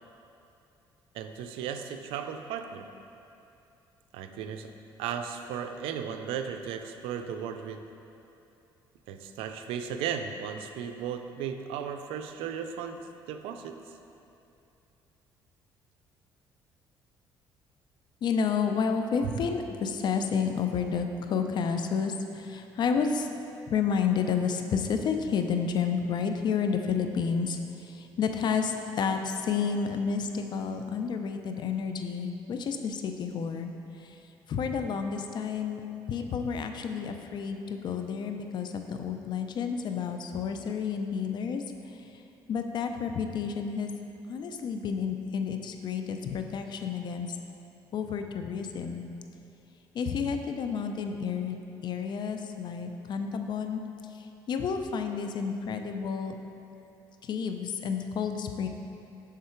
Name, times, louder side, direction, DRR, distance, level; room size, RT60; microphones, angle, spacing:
voice 1, 1.1-2.9 4.1-4.7 5.0-7.8 9.1-13.8 19.2-19.5, right 7 dB, 85° right, 7 dB, 0.4 m, -35 dB
voice 2, 18.2-23.3 23.7-27.6 27.9-33.7 34.5-35.8 36.1-41.6 42.5-43.9 44.3-47.3 47.9-49.0 49.9-51.6 51.8-53.8 54.5-56.3 57.2-58.7, left 6 dB, 55° left, 6 dB, 0.5 m, -30 dB
6.5 x 3.6 x 4.4 m, 2.8 s
cardioid pair, 90°, 9 cm